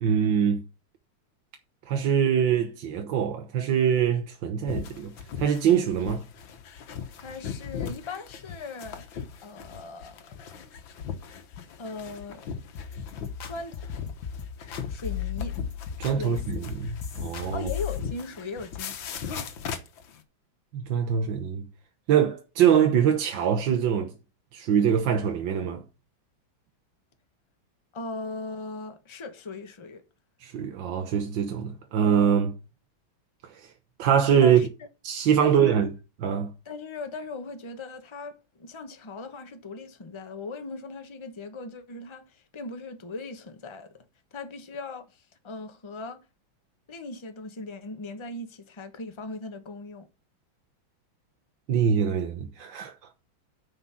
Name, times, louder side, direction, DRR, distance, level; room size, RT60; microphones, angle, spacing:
voice 1, 0.0-0.6 1.9-6.2 16.0-17.7 20.7-21.7 22.1-24.1 24.5-25.8 30.4-32.5 33.5-33.7 34.0-34.6 35.0-35.9 36.2-36.5 51.7-52.9, right 8 dB, 70° right, 1.6 m, -23 dB
sound 1, 4.7-20.2, left 7 dB, 75° left, 1.9 m, -38 dB
voice 2, 7.2-10.6 11.8-12.4 13.5-13.9 14.9-15.6 16.2-16.4 17.5-19.2 27.9-30.0 34.4-34.7 35.4-35.8 36.6-44.0 44.3-46.2 46.9-50.1, left 3 dB, 20° left, 0.8 m, -39 dB
sound 2, 12.8-18.0, left 9 dB, 60° left, 1.8 m, -35 dB
9.7 x 5.0 x 5.6 m
omnidirectional pair, 2.2 m